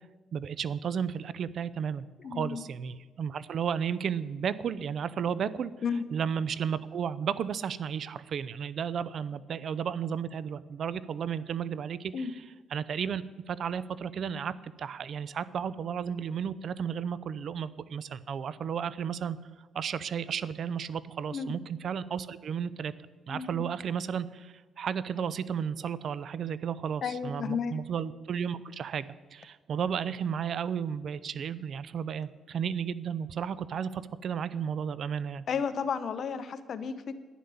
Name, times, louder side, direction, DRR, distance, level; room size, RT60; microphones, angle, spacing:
voice 1, 0.3-5.7 6.1-12.4 12.7-19.4 19.7-22.9 23.3-35.4, right 7 dB, 60° right, 17 dB, 0.6 m, -33 dB
voice 2, 2.2-2.6 5.8-6.1 12.1-12.3 21.3-21.5 23.3-23.6 27.0-27.8 35.5-37.1, left 6 dB, 55° left, 11 dB, 1.0 m, -33 dB
11.5 x 10.0 x 7.0 m, 1.3 s
cardioid pair, 90°, 0 cm